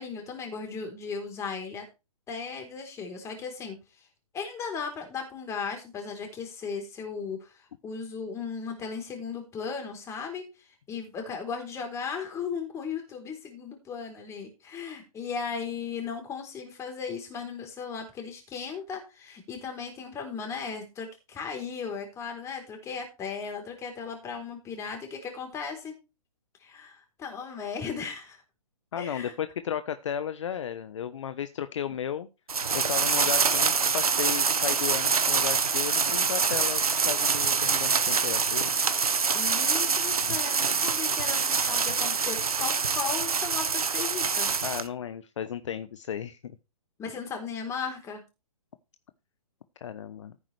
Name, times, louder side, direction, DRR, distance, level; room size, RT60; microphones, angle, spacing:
voice 1, 0.0-1.9 2.3-3.8 4.3-25.9 26.6-28.4 29.0-29.3 39.3-44.5 47.0-48.2, left 5 dB, 15° left, 3 dB, 3.8 m, -36 dB
voice 2, 28.9-32.3 32.7-38.7 40.2-40.4 44.6-46.6 49.8-50.4, left 9 dB, 50° left, 11 dB, 1.0 m, -34 dB
sound 1, 32.5-44.9, right 5 dB, 75° right, 1.4 m, -25 dB
14.5 x 8.9 x 3.4 m, 0.28 s
figure-of-eight pair, 130°, 19 cm